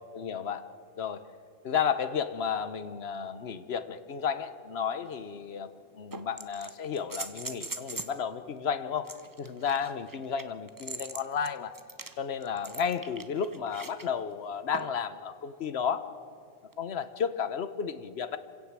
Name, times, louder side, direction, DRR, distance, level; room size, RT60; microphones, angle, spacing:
voice 1, 0.1-0.7 1.0-1.3 1.6-11.8 12.2-16.1 16.8-18.4, left 7 dB, 55° left, 12 dB, 1.1 m, -33 dB
sound 1, 5.1-5.2 6.1-8.2 9.0-14.1 14.7-15.1 16.7-16.8, right 3 dB, 20° right, 0.7 m, -42 dB
26.5 x 16.5 x 7.4 m, 2.4 s
omnidirectional pair, 1.3 m